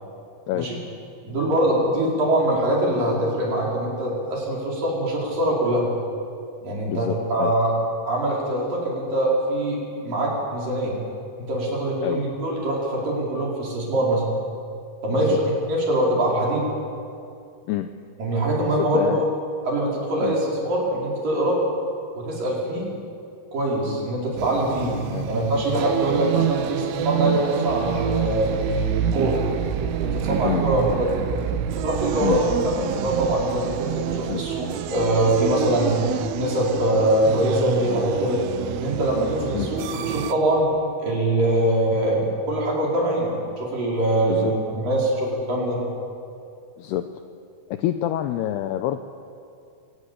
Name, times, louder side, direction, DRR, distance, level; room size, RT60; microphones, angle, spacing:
voice 1, 1.2-5.8 6.6-7.7 8.0-10.9 11.4-14.2 15.0-15.4 15.7-16.7 18.2-19.3 19.6-21.6 22.2-22.9 23.5-25.0 25.3-29.4 30.0-31.3 31.7-36.0 36.3-38.4 38.8-40.7 41.0-45.8, right 1 dB, 45° right, -3 dB, 6.3 m, -23 dB
voice 2, 6.9-7.5 12.0-12.2 15.1-15.4 17.7-17.9 18.8-19.3 20.2-20.4 25.1-25.3 26.1-26.2 30.4-30.6 32.2-32.4 34.3-34.4 39.5-39.7 44.3-44.6 46.8-47.1 47.7-49.0, left 12 dB, 85° left, 8 dB, 2.3 m, -27 dB
sound 1, 24.4-40.3, right 10 dB, 85° right, 3.4 m, -28 dB
24.0 x 19.5 x 8.4 m, 2.5 s
omnidirectional pair, 5.6 m